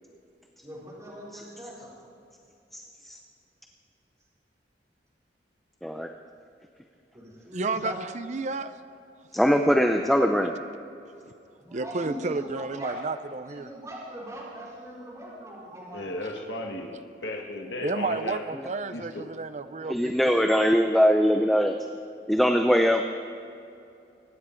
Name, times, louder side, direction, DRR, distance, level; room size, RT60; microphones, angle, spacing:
voice 1, 0.6-1.9 7.1-8.0 8.5-8.6 11.6-13.0 13.4-16.1, right 1 dB, 20° right, -7 dB, 4.5 m, -41 dB
voice 2, 2.7-3.2 5.8-6.1 9.3-10.5 19.9-21.8 22.3-23.0, equal, ahead, 4 dB, 0.5 m, -22 dB
voice 3, 7.5-8.7 11.7-13.7 17.8-20.5, right 3 dB, 40° right, 11 dB, 0.5 m, -31 dB
voice 4, 9.9-10.2 15.9-16.9 17.2-18.5 18.9-19.3, left 1 dB, 80° left, 1 dB, 1.6 m, -35 dB
24.0 x 10.0 x 4.5 m, 2.6 s
head